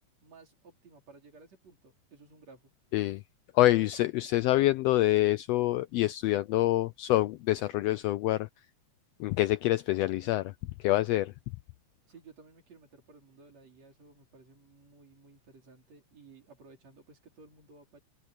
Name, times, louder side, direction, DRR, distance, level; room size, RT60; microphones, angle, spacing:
voice 1, 0.2-2.7 12.1-18.0, right 4 dB, 60° right, 5.1 m, -56 dB
voice 2, 3.5-8.5 9.2-10.5 10.8-11.3, left 16 dB, 80° left, 1.5 m, -26 dB
omnidirectional pair, 3.3 m